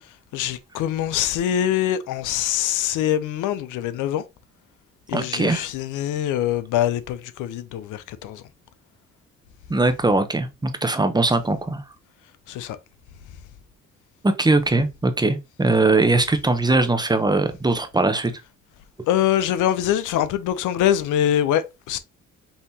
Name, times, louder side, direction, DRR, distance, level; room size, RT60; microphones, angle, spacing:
voice 1, 0.3-4.2 5.1-8.4 12.5-12.8 19.1-22.0, left 11 dB, 80° left, 0.5 m, -24 dB
voice 2, 5.1-5.7 9.7-11.8 14.2-18.3, right 2 dB, 15° right, 0.6 m, -20 dB
5.5 x 2.8 x 2.7 m
cardioid pair, 90°, 30 cm